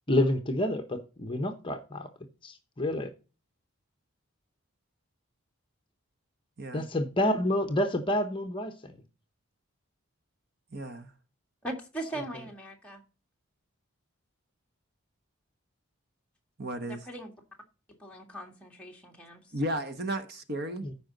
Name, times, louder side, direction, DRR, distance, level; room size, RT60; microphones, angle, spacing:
voice 1, 0.1-2.1 2.4-3.1 6.7-9.0 20.8-20.9, left 1 dB, 25° left, 0.9 m, -28 dB
voice 2, 10.7-11.1 16.6-17.0 19.5-20.9, right 1 dB, 45° right, 1.1 m, -34 dB
voice 3, 11.6-13.0 16.9-17.3 18.0-19.4, right 1 dB, 5° left, 1.7 m, -40 dB
14.0 x 5.2 x 4.0 m
head